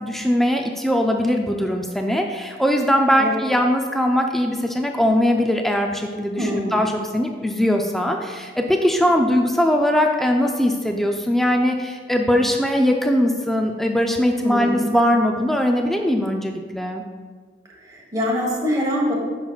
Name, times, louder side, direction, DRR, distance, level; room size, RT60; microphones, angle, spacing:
voice 1, 0.0-17.0, equal, ahead, 2 dB, 0.3 m, -20 dB
voice 2, 6.4-6.8 14.4-14.8 17.8-19.1, equal, 20° right, -3 dB, 1.3 m, -24 dB
9.4 x 5.8 x 2.4 m, 1.5 s
head